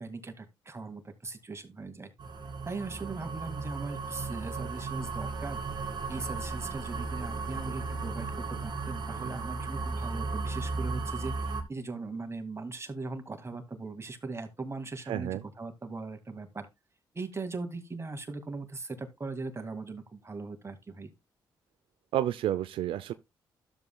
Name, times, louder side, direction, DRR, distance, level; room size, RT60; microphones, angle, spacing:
voice 1, 0.0-2.1 2.6-5.6 6.1-16.7 17.1-21.1, right 3 dB, 30° right, 2.1 m, -39 dB
sound 1, 2.2-11.6, right 4 dB, 55° right, 2.3 m, -35 dB
voice 2, 15.1-15.4 22.1-23.1, right 12 dB, 85° right, 0.5 m, -30 dB
12.5 x 7.3 x 2.3 m
supercardioid pair, 60°, 9 cm